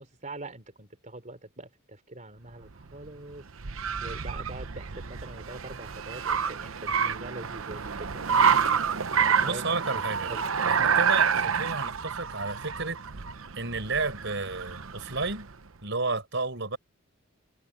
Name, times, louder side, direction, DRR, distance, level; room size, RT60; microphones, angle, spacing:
voice 1, 0.0-3.4 4.0-8.5 9.1-9.8 10.3-10.5, right 2 dB, 40° right, 3.4 m, -43 dB
Car, 2.6-15.5, right 6 dB, 85° right, 0.9 m, -28 dB
voice 2, 9.4-10.3 10.7-13.0 13.5-15.5 15.8-16.8, right 3 dB, 65° right, 6.8 m, -32 dB
head